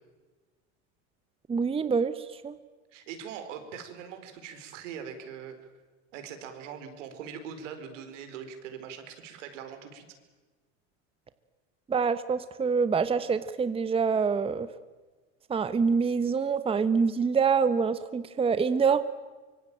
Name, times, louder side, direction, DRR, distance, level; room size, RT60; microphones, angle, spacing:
voice 1, 1.5-2.1 2.4-2.5 11.9-14.7 15.5-19.0, right 5 dB, 15° right, 12 dB, 1.0 m, -25 dB
voice 2, 2.9-5.6 6.1-10.0, right 7 dB, 80° right, 8 dB, 4.7 m, -42 dB
24.5 x 23.5 x 9.0 m, 1.3 s
supercardioid pair, 120°, 37 cm